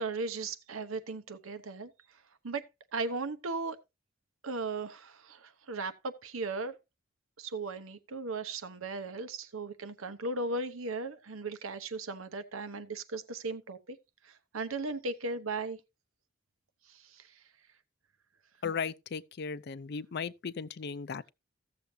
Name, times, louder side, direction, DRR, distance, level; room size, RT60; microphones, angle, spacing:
voice 1, 0.0-1.9 2.4-2.6 2.9-3.8 4.4-6.8 7.4-14.0 14.2-15.8 16.9-17.2, right 3 dB, 90° right, 1.0 m, -37 dB
voice 2, 18.6-21.3, left 6 dB, 50° left, 0.5 m, -36 dB
15.0 x 7.0 x 2.8 m
head